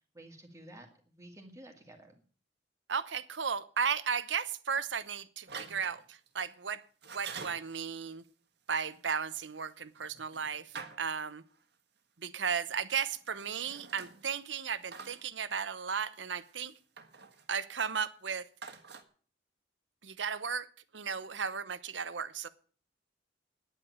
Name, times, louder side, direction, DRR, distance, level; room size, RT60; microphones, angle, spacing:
voice 1, 0.1-2.1, right 1 dB, 15° right, 3 dB, 2.2 m, -52 dB
voice 2, 2.9-6.8 7.1-8.2 8.7-11.4 12.2-16.7 17.5-18.5 20.0-22.5, right 6 dB, 80° right, 15 dB, 0.9 m, -35 dB
sound 1, 5.5-6.4 7.0-7.7 8.9-11.6 13.1-14.5 14.8-15.2 16.4-17.5 18.6-19.0, right 5 dB, 65° right, 1.7 m, -47 dB
10.0 x 9.0 x 9.5 m, 0.43 s
head